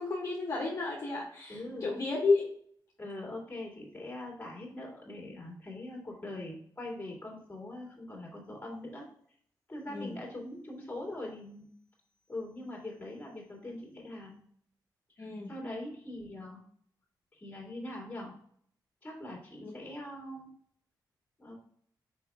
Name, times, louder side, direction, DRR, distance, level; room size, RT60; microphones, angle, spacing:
voice 1, 0.0-2.5 9.9-10.2 15.2-15.5 19.6-19.7, left 3 dB, 45° left, -3 dB, 1.3 m, -32 dB
voice 2, 1.5-1.9 3.0-9.1 9.7-11.7 12.3-14.4 15.2-16.6 17.3-18.3 19.0-20.5 21.4-21.6, left 1 dB, 20° left, -2 dB, 2.4 m, -42 dB
6.1 x 5.3 x 3.5 m, 0.63 s
wide cardioid pair, 130°, 8 cm